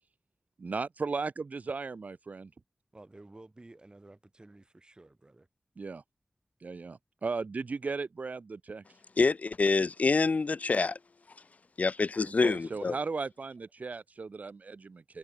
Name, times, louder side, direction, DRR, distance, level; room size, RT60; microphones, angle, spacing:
voice 1, 0.6-2.5 5.8-6.0 6.6-8.8 12.4-15.2, right 4 dB, 80° right, 0.8 m, -36 dB
voice 2, 2.9-5.5, right 2 dB, 35° right, 6.8 m, -53 dB
voice 3, 9.2-11.0 11.8-13.0, left 4 dB, 70° left, 0.6 m, -26 dB
wide cardioid pair, 80°, 3 cm